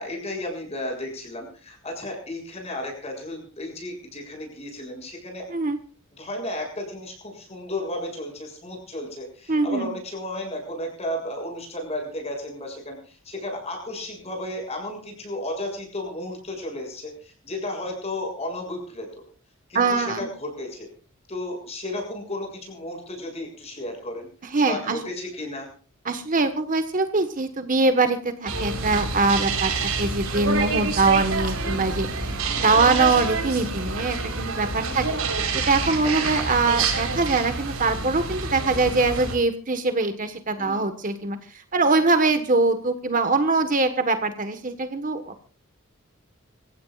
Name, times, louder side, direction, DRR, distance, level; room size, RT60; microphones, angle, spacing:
voice 1, 0.0-5.5 6.2-19.2 19.7-20.9 21.3-24.3 24.7-25.7 32.5-32.7 34.9-35.0 36.0-36.1 40.6-40.8, left 1 dB, 30° left, 3 dB, 7.0 m, -33 dB
voice 2, 9.5-9.9 19.7-20.3 24.4-25.0 26.0-29.7 30.0-35.2 35.5-45.4, right 3 dB, 40° right, 9 dB, 1.4 m, -23 dB
sound 1, 28.5-39.3, right 4 dB, 90° right, 4.2 m, -27 dB
26.0 x 15.5 x 2.5 m, 0.38 s
head